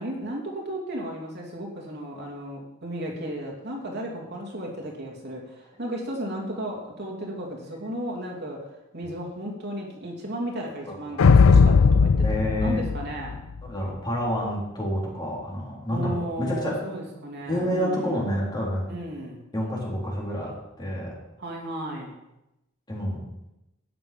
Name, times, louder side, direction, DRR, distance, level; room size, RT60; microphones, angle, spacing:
voice 1, 0.0-8.7 8.9-13.4 15.9-18.3 18.9-19.5 21.4-22.1, right 1 dB, 55° right, -1 dB, 3.0 m, -34 dB
voice 2, 10.9-11.2 12.2-12.8 13.6-16.8 17.5-18.9 19.5-21.1 22.9-23.2, equal, 20° left, -4 dB, 3.9 m, -29 dB
sound 1, 11.2-13.7, left 5 dB, 85° left, 0.4 m, -17 dB
12.5 x 9.9 x 5.3 m, 0.91 s
head